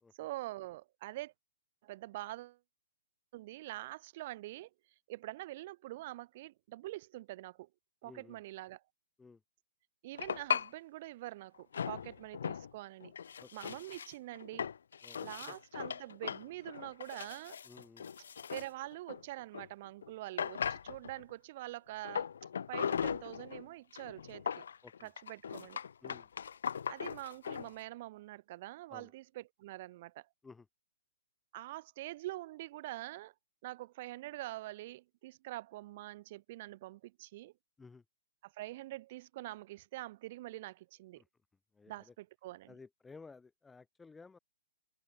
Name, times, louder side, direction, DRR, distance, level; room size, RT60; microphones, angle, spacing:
voice 1, 0.1-1.3 1.8-2.6 3.3-4.7 5.1-7.7 8.0-8.8 10.0-13.1 13.5-14.7 15.2-17.6 18.5-22.3 22.7-24.6 25.0-25.8 26.9-30.3 31.5-33.3 33.6-37.5 38.4-41.2 41.9-42.7, right 17 dB, 45° right, 1.7 m, -45 dB
voice 2, 8.0-8.4 9.2-9.4 13.4-13.5 15.0-15.5 17.6-18.1 24.8-25.1 26.0-26.3 28.9-29.1 30.4-30.7 37.8-38.0 41.2-41.3 41.7-42.1 42.7-44.4, left 4 dB, 10° left, 1.1 m, -55 dB
sound 1, 10.1-10.7 11.7-12.7 13.0-19.7 20.0-20.1 20.4-21.2 22.0-23.6 24.0-27.7, left 7 dB, 70° left, 1.2 m, -38 dB
hypercardioid pair, 135°, 0 cm